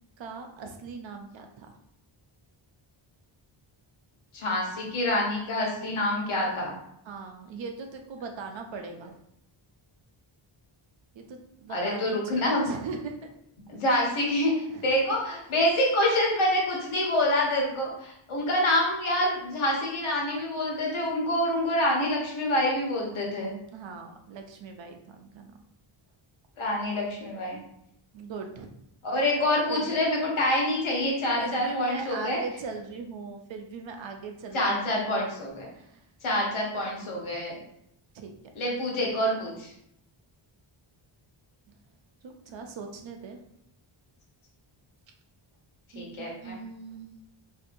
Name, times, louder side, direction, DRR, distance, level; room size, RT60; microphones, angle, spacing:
voice 1, 0.2-1.7 7.1-9.1 11.1-13.3 14.1-14.2 14.7-15.0 23.7-25.5 28.1-28.7 29.7-30.0 31.4-35.2 35.8-36.0 38.1-38.3 42.2-43.4 45.9-47.1, right 4 dB, 65° right, 4 dB, 0.6 m, -39 dB
voice 2, 4.3-6.7 11.7-12.6 13.7-14.5 14.8-23.5 26.6-27.6 29.0-32.4 34.5-35.7 36.2-37.6 38.5-39.7 45.9-46.6, left 1 dB, 80° left, -2 dB, 1.3 m, -26 dB
4.3 x 2.7 x 2.6 m, 0.74 s
wide cardioid pair, 175°, 48 cm